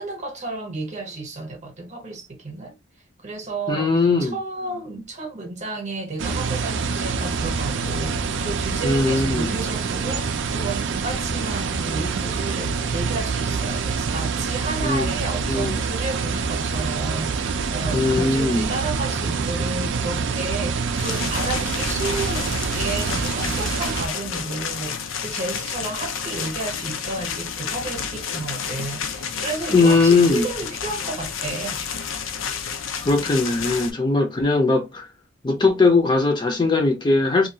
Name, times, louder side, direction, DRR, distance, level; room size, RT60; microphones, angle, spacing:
voice 1, 0.0-2.7 3.2-3.9 4.2-31.8, right 3 dB, 40° right, 0.9 m, -32 dB
voice 2, 3.7-4.4 8.8-9.5 14.8-15.1 15.5-15.8 17.9-18.7 29.7-30.5 33.1-35.1 35.4-37.5, left 3 dB, 25° left, 0.5 m, -19 dB
sound 1, 6.2-24.1, right 5 dB, 65° right, 0.4 m, -26 dB
sound 2, 21.0-33.9, left 7 dB, 85° left, 0.5 m, -30 dB
2.6 x 2.3 x 2.7 m
head